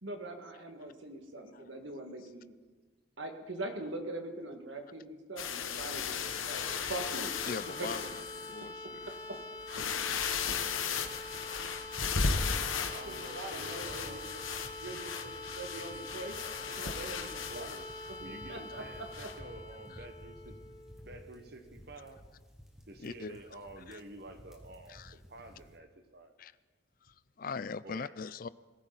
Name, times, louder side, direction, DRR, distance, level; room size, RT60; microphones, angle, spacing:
voice 1, 0.0-2.5 3.2-7.3 7.7-7.9 9.3-9.4 13.1-14.2 14.6-16.4 16.8-17.7 18.5-19.1, right 2 dB, 70° right, 4 dB, 2.0 m, -42 dB
sound 1, 5.4-8.6 9.1-9.2 9.6-18.2 19.1-19.4, left 5 dB, 90° left, 1.2 m, -36 dB
sound 2, 5.9-21.7, left 2 dB, 20° left, 6.9 m, -46 dB
voice 2, 7.5-8.0 8.4-9.0 19.9-20.1 23.0-23.4 23.9-24.0 24.9-25.1 26.4-26.5 27.0-28.5, left 5 dB, 45° left, 17 dB, 0.4 m, -41 dB
voice 3, 12.9-14.3 17.5-17.9 18.2-20.5 21.0-22.2 22.9-26.3 27.8-28.1, right 2 dB, 50° right, 7 dB, 1.4 m, -49 dB
sound 3, 13.5-25.8, equal, ahead, 1.6 m, -54 dB
21.5 x 14.5 x 4.1 m, 1.3 s
head